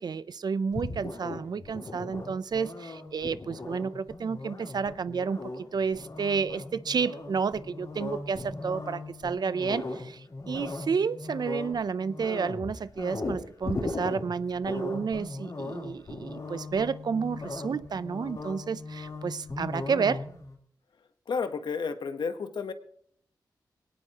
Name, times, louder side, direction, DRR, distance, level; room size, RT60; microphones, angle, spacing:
voice 1, 0.0-20.2, right 5 dB, 65° right, 0.6 m, -31 dB
sound 1, 0.7-20.6, left 2 dB, 55° left, 3.7 m, -38 dB
voice 2, 21.3-22.7, left 5 dB, 80° left, 1.1 m, -31 dB
21.5 x 18.0 x 3.0 m
cardioid pair, 70°, 8 cm